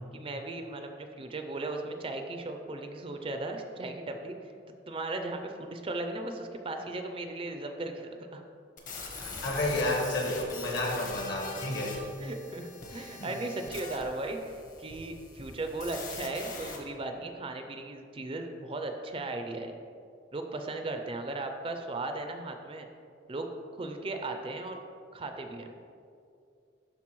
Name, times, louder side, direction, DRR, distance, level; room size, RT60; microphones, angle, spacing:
voice 1, 0.1-4.5 4.9-8.4 12.2-19.7 20.3-22.9 23.3-24.8 25.1-25.7, right 2 dB, 30° right, 5 dB, 0.4 m, -37 dB
sound 1, 8.8-16.8, left 3 dB, 45° left, 1.0 m, -43 dB
voice 2, 9.2-12.0 12.9-13.3, left 1 dB, 65° left, -1 dB, 1.4 m, -31 dB
12.0 x 4.0 x 3.1 m, 2.5 s
head